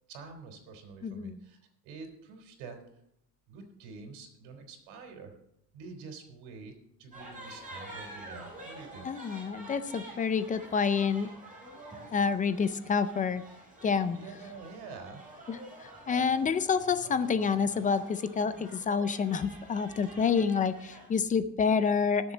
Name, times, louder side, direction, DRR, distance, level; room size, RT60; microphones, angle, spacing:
voice 1, 0.1-2.8 3.5-5.3 5.7-6.7 7.0-9.1 14.1-15.2, right 4 dB, 85° right, 4 dB, 3.5 m, -47 dB
voice 2, 1.0-1.4 9.0-11.3 12.1-13.4 13.8-14.2 15.5-22.3, left 6 dB, 20° left, 13 dB, 0.3 m, -28 dB
sound 1, 7.1-21.1, right 1 dB, 20° right, 5.7 m, -48 dB
19.0 x 7.3 x 3.9 m, 0.75 s
cardioid pair, 145°, 44 cm